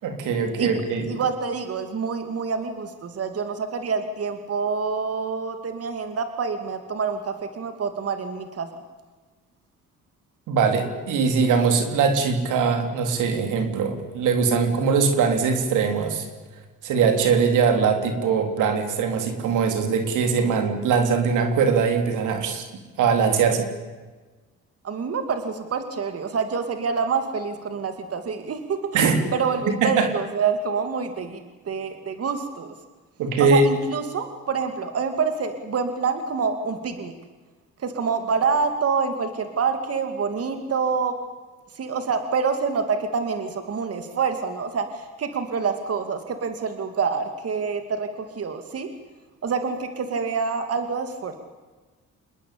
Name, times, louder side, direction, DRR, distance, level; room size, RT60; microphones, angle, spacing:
voice 1, 0.0-1.0 10.5-16.3 16.8-22.6 23.0-23.7 28.9-29.3 29.8-30.1 33.2-33.6, right 5 dB, 85° right, 6 dB, 4.1 m, -21 dB
voice 2, 1.0-8.7 24.8-29.1 29.3-32.7 33.4-37.1 37.8-41.2 41.7-48.9 49.4-51.4, right 5 dB, 50° right, 7 dB, 2.6 m, -27 dB
27.5 x 21.0 x 8.8 m, 1.3 s
cardioid pair, 90°, 30 cm